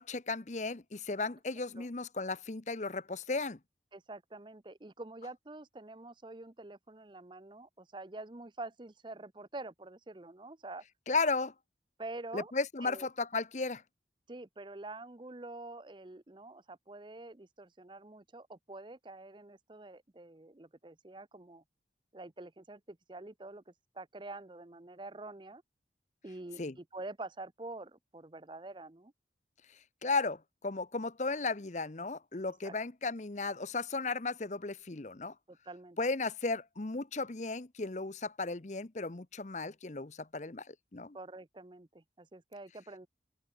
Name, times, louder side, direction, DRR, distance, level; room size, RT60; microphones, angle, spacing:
voice 1, 0.0-3.6 11.1-11.5 12.3-13.8 26.6-26.7 30.0-35.3 36.0-41.2, left 3 dB, 40° left, 0.9 m, -35 dB
voice 2, 3.9-10.8 12.0-12.5 12.8-13.1 14.3-21.6 22.1-25.6 26.2-29.1 32.6-32.7 35.5-36.0 41.1-43.1, right 2 dB, 25° right, 0.7 m, -47 dB
open air
head